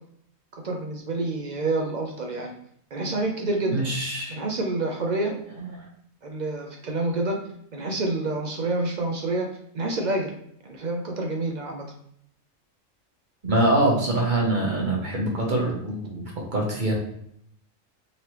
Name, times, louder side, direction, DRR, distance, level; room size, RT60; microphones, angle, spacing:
voice 1, 0.6-2.5 2.9-3.8 4.3-5.3 6.2-7.4 7.7-9.5 9.7-10.3 10.6-11.9, right 2 dB, 65° right, 1 dB, 0.4 m, -28 dB
voice 2, 3.6-4.4 5.2-5.8 13.4-16.9, right 1 dB, 40° right, -2 dB, 0.9 m, -24 dB
3.8 x 3.2 x 2.9 m, 0.71 s
omnidirectional pair, 1.4 m